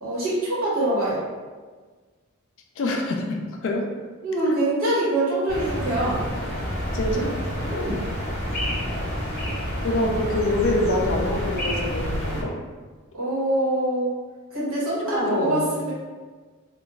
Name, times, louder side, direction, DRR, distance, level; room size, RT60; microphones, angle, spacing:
voice 1, 0.0-1.2 4.2-6.2 7.6-8.0 13.1-14.1 14.5-15.9, right 1 dB, 85° right, -7 dB, 1.1 m, -24 dB
voice 2, 2.8-3.9 4.5-4.6 6.9-7.3 9.8-12.5 15.0-15.7, left 2 dB, 60° left, 1 dB, 0.4 m, -25 dB
sound 1, 5.5-12.4, equal, 45° left, 0.9 m, -28 dB
2.9 x 2.3 x 2.3 m, 1.4 s
head